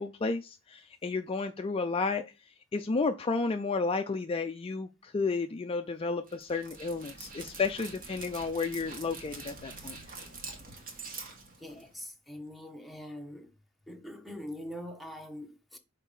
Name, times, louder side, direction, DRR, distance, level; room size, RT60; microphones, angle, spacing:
voice 1, 0.0-2.2 2.7-10.0, left 4 dB, 25° left, 0.4 m, -32 dB
Dog, 6.3-12.1, right 3 dB, 45° right, 1.6 m, -45 dB
voice 2, 11.6-13.5 13.9-15.8, equal, ahead, 0.9 m, -43 dB
5.6 x 4.0 x 5.4 m
head